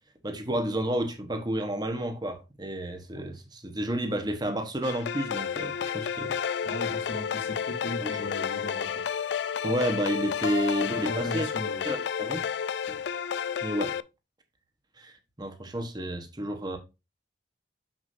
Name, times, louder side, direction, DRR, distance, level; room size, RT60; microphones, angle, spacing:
voice 1, 0.2-6.4 8.0-8.3 9.6-11.5 11.8-12.4 12.9-13.0 13.6-13.9 15.0-15.1 15.4-16.8, right 1 dB, 20° right, 1.2 m, -31 dB
sound 1, 4.8-14.0, left 7 dB, 60° left, 0.3 m, -31 dB
voice 2, 6.6-9.0 11.1-11.8, left 1 dB, 85° left, 2.3 m, -37 dB
7.2 x 6.3 x 2.6 m
head